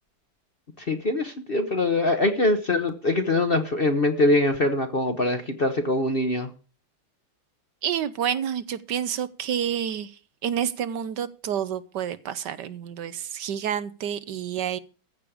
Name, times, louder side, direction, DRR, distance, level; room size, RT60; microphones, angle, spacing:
voice 1, 0.8-6.5, left 2 dB, 40° left, 8 dB, 0.9 m, -23 dB
voice 2, 7.8-10.1 10.4-14.8, right 9 dB, 70° right, 14 dB, 1.3 m, -29 dB
15.0 x 5.2 x 8.5 m, 0.35 s
omnidirectional pair, 2.1 m